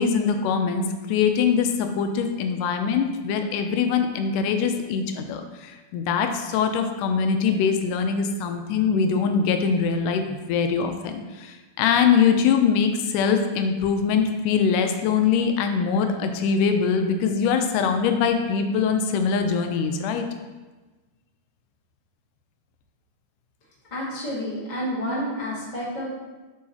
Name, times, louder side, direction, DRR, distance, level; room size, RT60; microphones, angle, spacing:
voice 1, 0.0-20.3, left 6 dB, 85° left, 6 dB, 2.1 m, -23 dB
voice 2, 23.9-26.1, equal, 50° left, -6 dB, 0.5 m, -29 dB
7.5 x 4.7 x 2.8 m, 1.2 s
omnidirectional pair, 3.7 m